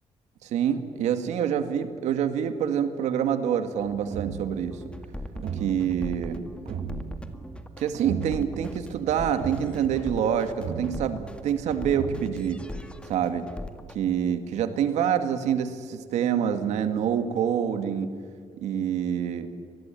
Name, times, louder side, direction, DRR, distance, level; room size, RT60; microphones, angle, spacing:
voice 1, 0.4-4.8 5.5-6.5 7.8-12.6 13.1-13.5 13.9-18.1 18.6-19.5, right 8 dB, 90° right, 9 dB, 2.1 m, -26 dB
sound 1, 3.8-13.0, right 6 dB, 65° right, 1.5 m, -38 dB
sound 2, 4.6-13.9, left 1 dB, 10° left, 2.0 m, -39 dB
24.5 x 20.5 x 9.1 m, 2.2 s
cardioid pair, 105°, 11 cm